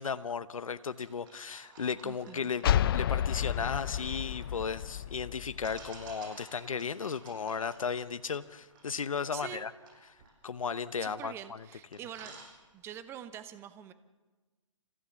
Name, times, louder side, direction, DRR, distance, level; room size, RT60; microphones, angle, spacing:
voice 1, 0.0-2.7 2.9-9.7 10.4-11.7, left 6 dB, 85° left, 12 dB, 0.9 m, -35 dB
sound 1, 1.0-5.0 5.6-11.3 11.6-11.7 11.9-13.0, right 3 dB, 40° right, 6.5 m, -54 dB
voice 2, 2.0-2.5 9.3-9.7 11.0-12.4 12.7-13.9, right 11 dB, 15° right, 12 dB, 0.8 m, -45 dB
sound 2, 2.6-6.1, left 10 dB, 45° left, 0.6 m, -31 dB
28.0 x 15.0 x 7.1 m, 1.3 s
hypercardioid pair, 145°, 17 cm